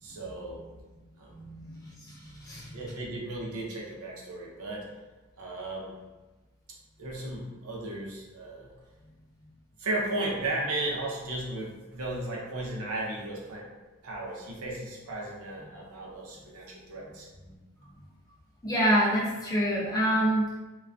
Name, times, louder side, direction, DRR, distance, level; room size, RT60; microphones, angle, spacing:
voice 1, 0.0-0.6 1.2-1.3 2.7-4.9 5.4-5.9 7.0-8.7 9.8-13.7 14.0-17.3, right 2 dB, 75° right, -3 dB, 0.6 m, -35 dB
voice 2, 1.2-2.7 17.5-17.6 18.6-20.6, equal, 15° left, -5 dB, 0.4 m, -27 dB
2.3 x 2.2 x 2.4 m, 1.2 s
head